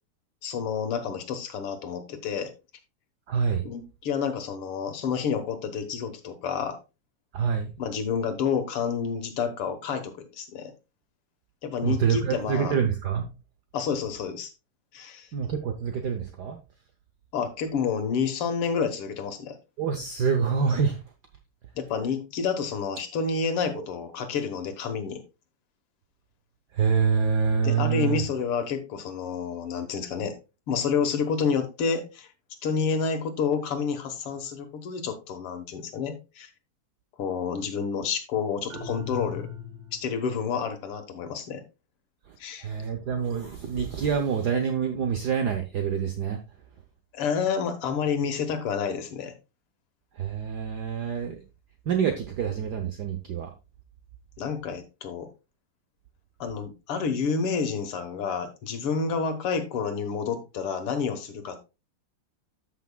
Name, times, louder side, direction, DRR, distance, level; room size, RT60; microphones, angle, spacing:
voice 1, 0.4-2.5 3.6-6.8 7.8-10.7 11.6-12.8 13.7-14.5 14.9-15.3 17.3-19.6 21.8-25.2 27.6-30.4 30.7-32.3 32.6-36.5 37.2-39.5 39.9-41.6 42.4-42.7 47.1-49.3 54.4-55.3 56.4-61.7, left 6 dB, 85° left, 8 dB, 2.1 m, -29 dB
voice 2, 3.3-3.6 7.3-7.7 11.8-13.3 15.3-16.6 19.8-21.0 26.7-28.2 42.6-46.4 50.2-51.4 51.9-53.5, right 6 dB, 60° right, 6 dB, 1.1 m, -26 dB
sound 1, 38.7-40.2, left 6 dB, 45° right, 2.5 m, -37 dB
13.5 x 5.9 x 2.2 m, 0.28 s
omnidirectional pair, 2.4 m